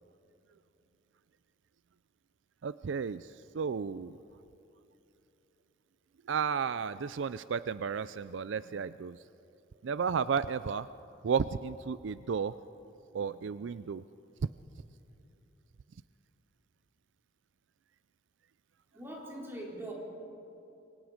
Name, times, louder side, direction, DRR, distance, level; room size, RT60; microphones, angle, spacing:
voice 1, 2.6-4.2 6.3-9.2 9.8-10.9 11.2-12.5 13.1-14.0, right 6 dB, 75° right, 15 dB, 0.4 m, -33 dB
voice 2, 18.9-19.9, right 1 dB, 15° right, -3 dB, 4.2 m, -42 dB
27.5 x 24.0 x 5.1 m, 2.9 s
head